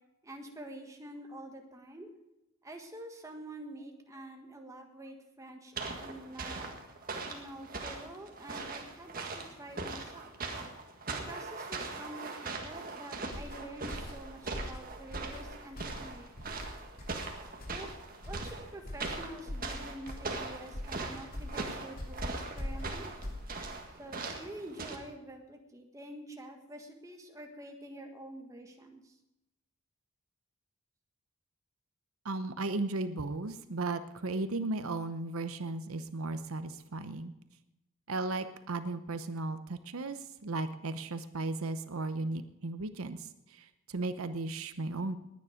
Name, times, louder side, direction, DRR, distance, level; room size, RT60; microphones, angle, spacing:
voice 1, 0.2-2.1 2.6-5.7 6.0-6.7 7.3-10.3 11.1-16.3 17.7-17.9 18.2-23.0 24.0-29.1, right 1 dB, 15° right, 3 dB, 1.6 m, -47 dB
sound 1, 5.8-25.0, right 3 dB, 40° right, 1.8 m, -41 dB
sound 2, 13.2-23.8, left 1 dB, 40° left, 2.8 m, -43 dB
voice 2, 32.2-37.3 38.1-45.2, right 2 dB, 80° right, 11 dB, 0.8 m, -36 dB
20.0 x 9.5 x 5.1 m, 0.92 s
head